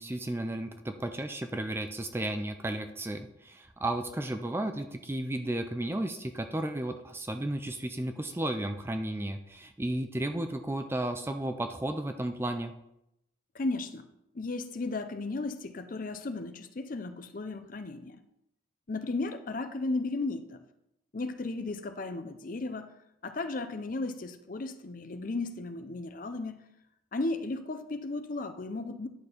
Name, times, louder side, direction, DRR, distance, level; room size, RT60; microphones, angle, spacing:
voice 1, 0.0-12.7, right 1 dB, 10° right, 7 dB, 0.4 m, -33 dB
voice 2, 13.5-14.1 14.3-18.2 18.9-20.6 21.1-22.9 23.2-26.6 27.1-29.1, left 2 dB, 45° left, 9 dB, 0.5 m, -35 dB
11.0 x 4.4 x 5.0 m, 0.83 s
head